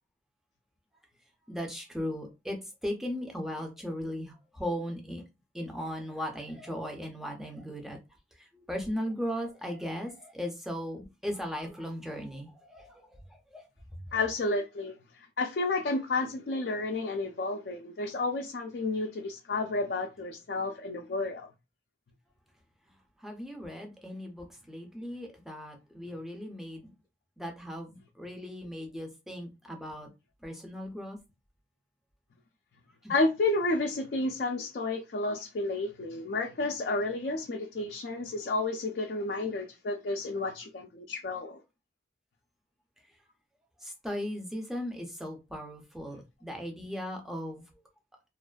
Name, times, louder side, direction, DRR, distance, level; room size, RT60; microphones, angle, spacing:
voice 1, 1.5-5.2 5.5-8.0 8.3-14.2 23.2-26.9 27.4-30.1 30.4-31.2 33.0-33.1 43.8-47.6, equal, ahead, 0.5 m, -37 dB
voice 2, 14.1-15.0 15.4-21.5 33.1-41.6, left 2 dB, 60° left, 0.4 m, -31 dB
2.5 x 2.3 x 2.2 m
head